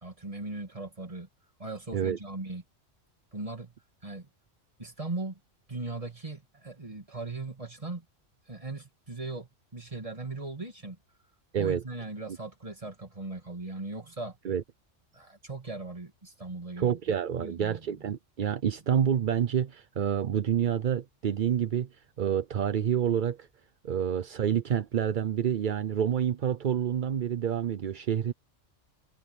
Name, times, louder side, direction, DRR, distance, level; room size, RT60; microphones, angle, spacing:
voice 1, 0.0-1.3 1.6-2.6 3.3-3.7 4.0-4.3 4.8-5.4 5.7-8.0 8.5-11.0 11.6-14.4 15.1-17.0 17.3-18.0, right 2 dB, 25° right, 2.6 m, -39 dB
voice 2, 16.8-23.5 23.8-28.3, right 9 dB, 50° right, 0.7 m, -28 dB
omnidirectional pair, 1.3 m